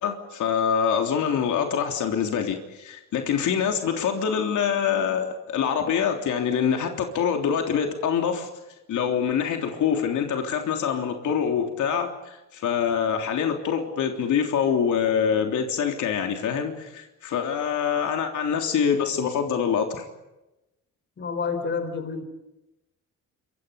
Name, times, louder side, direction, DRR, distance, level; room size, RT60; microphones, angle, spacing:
voice 1, 0.0-8.5 8.9-20.0, left 7 dB, 70° left, 3 dB, 3.4 m, -25 dB
voice 2, 21.2-22.2, left 5 dB, 35° left, 9 dB, 4.3 m, -29 dB
29.5 x 25.5 x 5.3 m, 0.96 s
cardioid pair, 155°, 31 cm